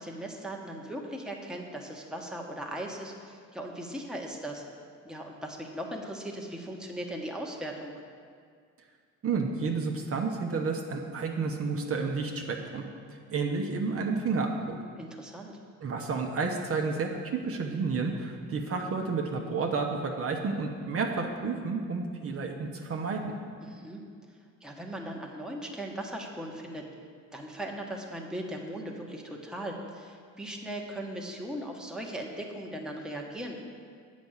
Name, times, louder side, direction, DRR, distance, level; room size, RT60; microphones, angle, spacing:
voice 1, 0.0-4.6 5.0-7.9 15.0-15.6 23.6-24.0 24.6-26.9 27.3-33.6, right 1 dB, ahead, 0 dB, 1.1 m, -38 dB
voice 2, 9.2-12.8 13.3-14.8 15.8-23.3, right 4 dB, 50° right, 2 dB, 0.9 m, -31 dB
8.0 x 5.1 x 7.2 m, 2.1 s
cardioid pair, 90°, 30 cm